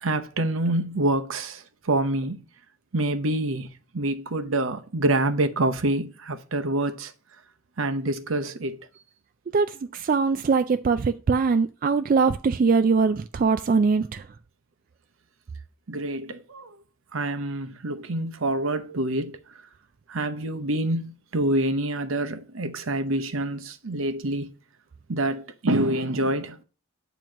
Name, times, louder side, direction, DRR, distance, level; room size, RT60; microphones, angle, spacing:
voice 1, 0.0-2.4 2.9-3.7 3.9-7.1 7.8-8.8 15.9-16.7 17.1-19.4 20.1-24.5 25.1-26.6, right 1 dB, 75° right, 0.8 m, -26 dB
voice 2, 9.5-14.3, right 4 dB, 40° right, 0.3 m, -22 dB
8.9 x 3.0 x 6.2 m
head